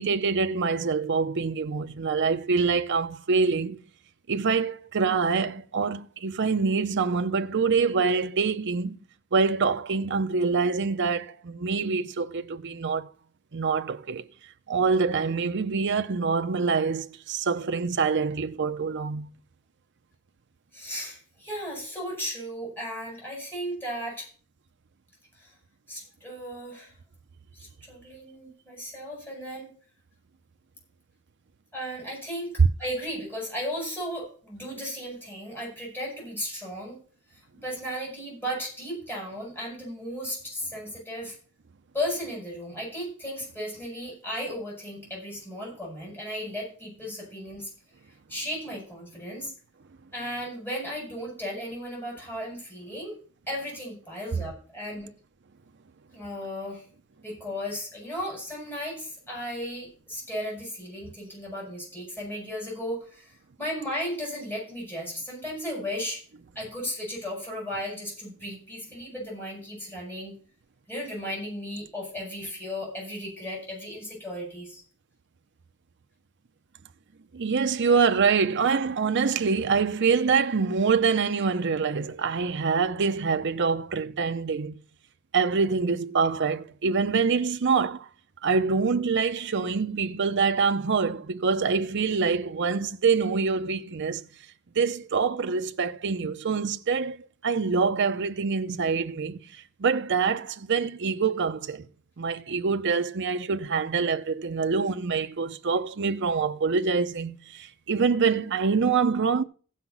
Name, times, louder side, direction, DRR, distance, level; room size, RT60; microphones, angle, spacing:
voice 1, 0.0-3.8 4.3-9.0 9.3-13.1 13.5-14.2 14.7-19.3 77.3-84.8 85.3-88.1 88.4-94.2 94.8-97.2 97.4-99.4 99.8-101.9 102.2-109.4, right 5 dB, 55° right, 0.7 m, -25 dB
voice 2, 20.7-24.3 25.4-25.5 25.9-26.9 27.5-29.7 31.7-37.0 37.3-41.3 41.9-47.7 48.3-49.5 50.1-53.2 53.5-55.1 56.1-56.8 57.2-66.2 66.5-70.4 70.9-74.8, equal, 10° left, 8.0 m, -35 dB
15.5 x 5.8 x 5.9 m
head